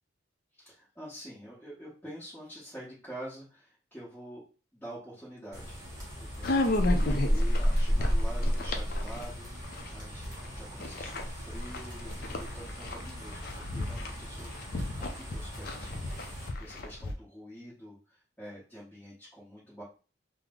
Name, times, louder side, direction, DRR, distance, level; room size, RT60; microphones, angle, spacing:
voice 1, 0.5-4.4 4.7-5.8 6.2-10.2 10.5-19.8, equal, 10° left, -9 dB, 1.0 m, -47 dB
sound 1, 5.5-16.5, equal, 15° right, 1.2 m, -33 dB
sound 2, 6.4-10.5 10.8-17.1, left 2 dB, 45° left, 0.4 m, -34 dB
3.0 x 2.0 x 3.5 m, 0.35 s
head